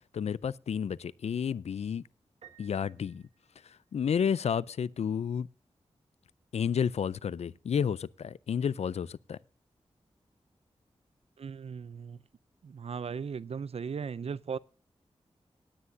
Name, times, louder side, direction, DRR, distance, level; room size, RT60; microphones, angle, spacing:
voice 1, 0.1-2.0 2.6-3.2 3.9-5.5 6.5-9.4, left 7 dB, 75° left, 0.4 m, -31 dB
Piano, 2.4-4.2, right 10 dB, 80° right, 1.4 m, -58 dB
voice 2, 11.4-12.2 12.6-14.6, right 6 dB, 65° right, 0.5 m, -37 dB
17.5 x 9.9 x 2.7 m
wide cardioid pair, 70°, 11 cm